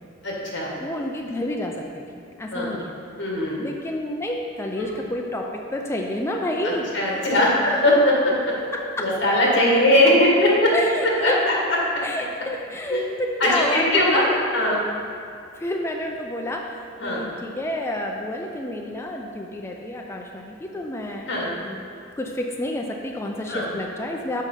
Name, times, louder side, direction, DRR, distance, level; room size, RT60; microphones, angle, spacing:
voice 1, 0.2-0.7 2.5-2.8 3.2-3.6 4.8-4.9 6.9-8.3 9.0-10.7 11.2-11.3 12.9-13.0 13.4-14.2 14.5-14.8 17.0-17.2 21.3-21.5 23.5-23.6, left 1 dB, 65° left, -4 dB, 1.8 m, -19 dB
voice 2, 0.8-2.9 3.6-5.5 5.7-7.2 8.7-9.1 10.7-11.4 12.0-14.4 15.5-21.3 21.6-21.9 22.2-24.4, left 1 dB, 15° left, 1 dB, 0.4 m, -29 dB
6.3 x 5.3 x 5.7 m, 2.5 s
head